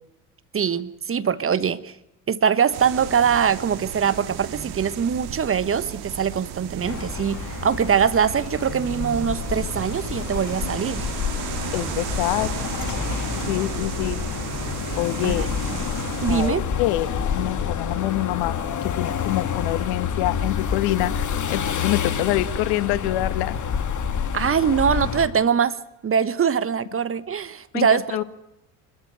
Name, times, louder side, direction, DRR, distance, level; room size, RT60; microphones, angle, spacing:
voice 1, 0.5-1.9 2.3-11.1 15.2-15.4 16.2-16.6 24.3-25.8 26.0-28.2, right 7 dB, 30° right, 14 dB, 1.2 m, -22 dB
sound 1, 2.7-16.5, right 9 dB, 55° right, 2.1 m, -34 dB
sound 2, 6.8-25.3, left 7 dB, 40° left, 2.5 m, -28 dB
voice 2, 11.7-12.5 13.5-14.2 14.9-15.5 16.3-23.6 27.7-28.2, left 15 dB, 60° left, 13 dB, 1.5 m, -26 dB
25.5 x 13.5 x 9.6 m, 0.90 s
hypercardioid pair, 60°, 45 cm